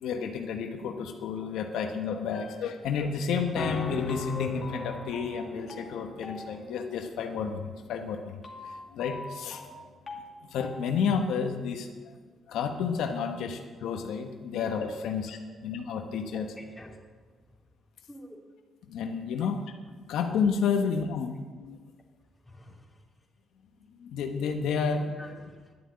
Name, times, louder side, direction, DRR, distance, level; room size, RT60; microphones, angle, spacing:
voice 1, 0.0-7.6 7.9-8.3 8.9-9.8 10.5-11.9 12.5-16.5 18.9-19.6 20.1-21.8 24.0-25.4, left 6 dB, 85° left, 5 dB, 1.0 m, -31 dB
sound 1, 2.3-3.0 3.5-11.0, left 3 dB, 35° left, 2.2 m, -39 dB
voice 2, 16.3-17.0 18.1-18.4 19.4-19.5 22.5-23.0 25.2-25.7, left 1 dB, 10° left, 0 dB, 2.5 m, -48 dB
12.0 x 7.7 x 8.6 m, 1.4 s
cardioid pair, 90°, 0 cm